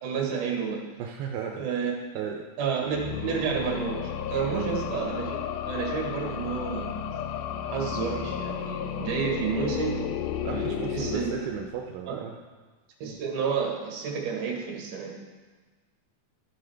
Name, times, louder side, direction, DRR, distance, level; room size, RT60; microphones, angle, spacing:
voice 1, 0.0-0.8 1.6-1.9 2.6-5.4 5.7-6.9 7.6-10.0 10.5-11.3 12.1-12.2 13.0-15.2, right 6 dB, 65° right, 0 dB, 2.9 m, -30 dB
voice 2, 1.0-2.5 4.5-4.7 10.4-12.4, right 7 dB, 85° right, 2 dB, 2.5 m, -35 dB
sound 1, 2.9-12.0, left 9 dB, 90° left, 1.7 m, -33 dB
14.0 x 7.5 x 3.4 m, 1.4 s
omnidirectional pair, 4.2 m